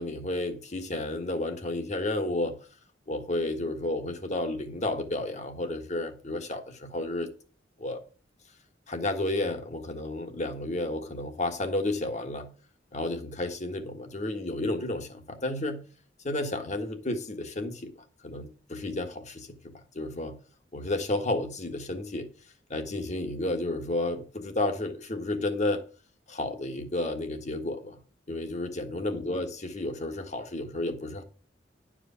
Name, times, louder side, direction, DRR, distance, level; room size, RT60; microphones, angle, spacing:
voice 1, 0.0-2.6 3.1-7.3 7.8-8.0 8.9-12.5 12.9-15.8 16.2-17.9 18.2-20.4 20.7-22.3 22.7-25.8 26.3-28.0 28.3-31.2, left 2 dB, 40° left, 1.5 m, -32 dB
11.0 x 5.0 x 6.8 m
head